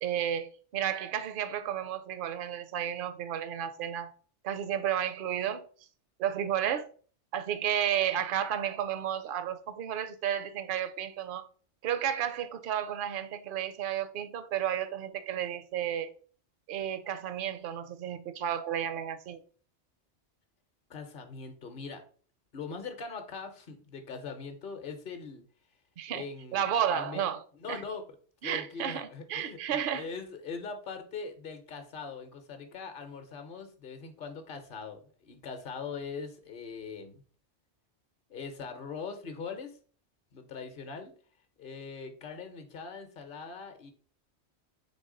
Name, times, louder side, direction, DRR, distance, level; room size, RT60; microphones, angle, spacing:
voice 1, 0.0-4.1 4.4-5.7 6.2-6.9 7.3-11.5 11.8-16.1 16.7-19.4 26.0-26.2 26.5-27.4 27.7-27.8 28.4-30.1, right 9 dB, 60° right, 0.6 m, -32 dB
voice 2, 20.9-22.0 22.5-25.4 26.1-27.2 27.6-28.0 28.4-29.6 29.9-37.2 38.3-39.8 40.3-41.1 41.6-43.9, left 5 dB, 55° left, 0.9 m, -41 dB
4.0 x 3.5 x 3.7 m
omnidirectional pair, 1.1 m